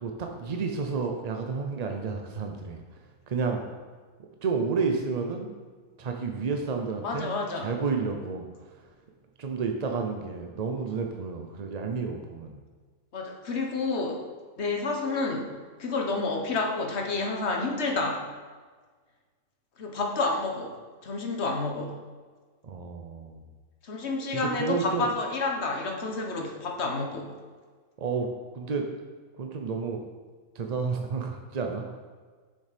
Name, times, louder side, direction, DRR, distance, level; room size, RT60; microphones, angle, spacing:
voice 1, 0.0-2.8 3.3-3.6 4.4-5.5 6.0-8.5 9.4-12.6 22.6-23.4 24.3-25.1 28.0-28.3 28.5-28.9 29.4-30.0 30.5-31.9, right 5 dB, 50° right, 3 dB, 0.4 m, -31 dB
voice 2, 7.0-7.7 13.1-14.2 14.6-15.5 15.8-18.3 19.8-20.7 21.0-22.0 23.8-27.3, left 3 dB, 50° left, 1 dB, 1.3 m, -29 dB
6.9 x 6.8 x 5.1 m, 1.5 s
omnidirectional pair, 1.6 m